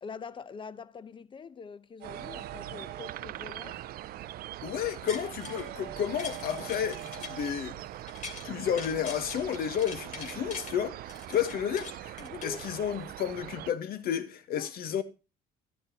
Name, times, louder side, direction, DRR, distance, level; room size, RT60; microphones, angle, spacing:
voice 1, 0.0-3.9 12.2-12.6 14.5-14.7, left 5 dB, 30° left, 0.7 m, -44 dB
sound 1, 2.0-13.7, right 14 dB, 60° right, 0.5 m, -42 dB
sound 2, 2.0-7.9, right 10 dB, 75° right, 1.3 m, -47 dB
voice 2, 4.6-7.8 8.4-15.0, left 9 dB, 60° left, 1.2 m, -32 dB
sound 3, 4.8-5.7 6.0-8.5 8.8-10.7 11.1-13.1 13.6-13.7, left 5 dB, 45° left, 2.6 m, -44 dB
12.5 x 11.0 x 2.9 m
cardioid pair, 110°, 17 cm